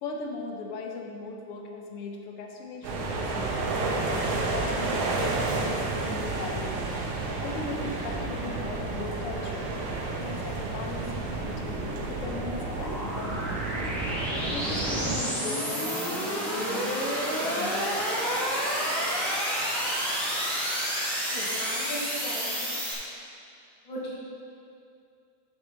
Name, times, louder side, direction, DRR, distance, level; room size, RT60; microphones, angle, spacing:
voice 1, 0.0-3.6 4.1-6.9 7.2-9.7 10.2-13.8 14.3-18.5, left 3 dB, 70° left, 2 dB, 1.4 m, -38 dB
sound 1, 2.8-15.2, right 3 dB, 75° right, 2.4 m, -31 dB
sound 2, 6.5-11.9, equal, 90° left, 2.9 m, -46 dB
sound 3, 10.0-22.9, equal, ahead, 1.2 m, -30 dB
voice 2, 21.3-22.5 23.8-24.1, equal, 45° left, -6 dB, 2.2 m, -36 dB
10.0 x 6.5 x 4.0 m, 2.4 s
omnidirectional pair, 3.5 m